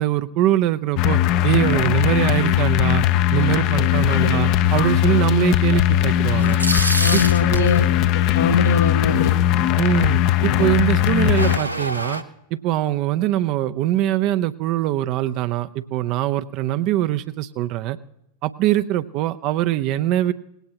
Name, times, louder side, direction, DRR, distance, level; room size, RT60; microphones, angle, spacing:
voice 1, 0.0-3.0 3.3-6.6 7.1-7.7 9.8-12.2 12.5-18.0 18.4-20.3, right 13 dB, 40° right, 12 dB, 0.6 m, -22 dB
sound 1, 1.0-11.6, left 12 dB, 40° left, 0.7 m, -19 dB
voice 2, 4.1-4.4 7.0-7.9 8.1-9.3, left 6 dB, 65° left, 7 dB, 2.1 m, -23 dB
sound 2, 6.3-7.8 11.1-12.2, right 1 dB, 85° right, 0.8 m, -25 dB
19.0 x 17.0 x 2.9 m, 0.83 s
figure-of-eight pair, 90°, 0 cm